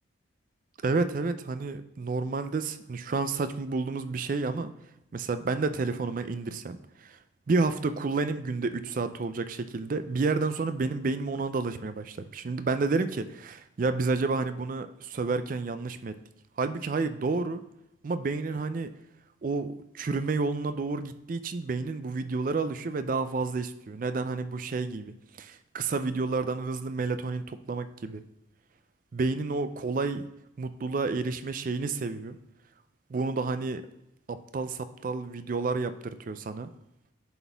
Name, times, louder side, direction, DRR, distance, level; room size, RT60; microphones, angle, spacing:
voice 1, 0.8-4.7 5.1-7.2 7.5-16.2 16.6-17.6 18.0-18.9 19.4-28.2 29.1-30.2 30.6-32.4 33.1-33.9 34.3-36.7, right 3 dB, 45° right, 11 dB, 0.4 m, -30 dB
11.0 x 4.2 x 3.4 m, 0.86 s
head